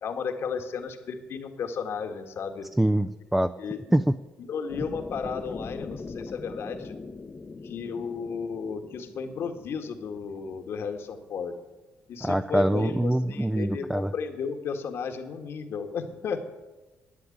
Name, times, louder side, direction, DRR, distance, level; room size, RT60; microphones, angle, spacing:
voice 1, 0.0-2.7 3.6-4.0 4.4-6.9 7.6-11.5 12.1-16.5, left 6 dB, 60° left, 5 dB, 1.8 m, -34 dB
voice 2, 2.8-3.5 3.9-4.2 12.2-14.1, right 1 dB, 5° right, 8 dB, 0.4 m, -24 dB
sound 1, 4.7-10.8, left 4 dB, 25° left, 0.8 m, -41 dB
11.5 x 9.9 x 8.6 m, 1.1 s
cardioid pair, 115°, 5 cm